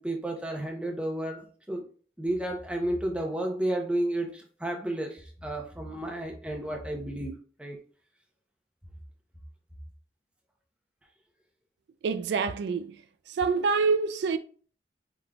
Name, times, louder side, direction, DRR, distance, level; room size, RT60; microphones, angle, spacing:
voice 1, 0.0-1.8 2.2-7.3 7.6-7.8, right 1 dB, 5° right, 0.7 m, -32 dB
voice 2, 12.0-13.0 13.4-14.4, right 5 dB, 70° right, 0.3 m, -26 dB
4.9 x 3.6 x 2.3 m
head